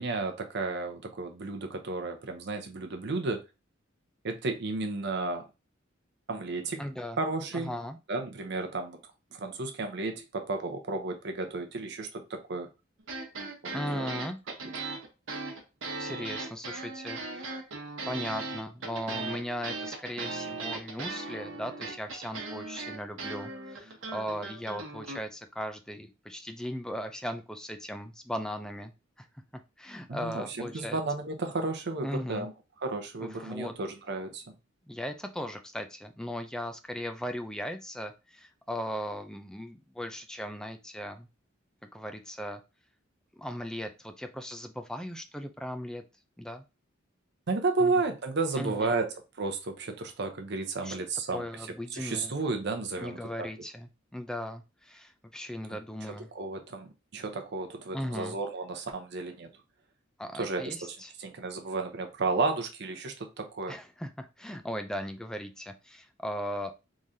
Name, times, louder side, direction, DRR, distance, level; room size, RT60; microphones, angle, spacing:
voice 1, 0.0-3.4 4.2-5.5 6.3-6.8 7.2-7.7 8.1-9.0 9.3-12.7 13.6-14.1 30.1-32.5 32.8-34.5 47.5-51.7 52.0-53.5 56.1-59.5 60.3-63.8, right 3 dB, 60° right, 5 dB, 0.7 m, -33 dB
voice 2, 6.8-7.2 7.5-8.0 13.7-14.4 16.0-17.6 18.1-28.9 29.8-31.0 32.0-32.5 33.2-33.7 34.9-41.3 41.9-42.6 43.4-46.0 46.4-46.6 47.8-48.0 48.6-49.0 50.8-51.0 51.3-52.3 53.0-56.3 57.9-58.4 60.2-61.1 63.7-66.7, equal, 5° left, 6 dB, 0.4 m, -38 dB
sound 1, 13.0-25.2, right 3 dB, 80° right, 1.0 m, -38 dB
3.7 x 3.1 x 2.7 m, 0.27 s
head